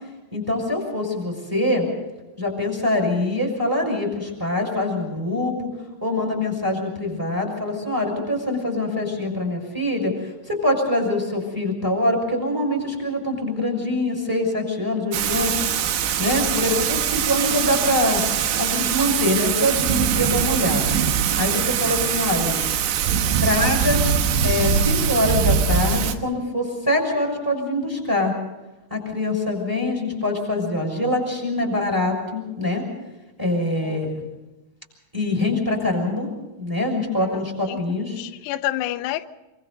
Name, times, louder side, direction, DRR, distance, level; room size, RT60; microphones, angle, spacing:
voice 1, 0.3-1.9 2.4-5.7 6.0-15.6 16.2-18.2 18.5-21.0 21.4-22.6 23.4-24.0 24.4-28.3 28.9-32.8 33.4-34.1 35.1-36.3 36.6-38.2, left 1 dB, 5° right, 5.6 m, -24 dB
Thunder / Rain, 15.1-26.1, right 8 dB, 70° right, 3.2 m, -22 dB
voice 2, 37.2-37.8 38.2-39.3, left 14 dB, 85° left, 2.4 m, -29 dB
26.0 x 25.0 x 4.0 m
omnidirectional pair, 5.9 m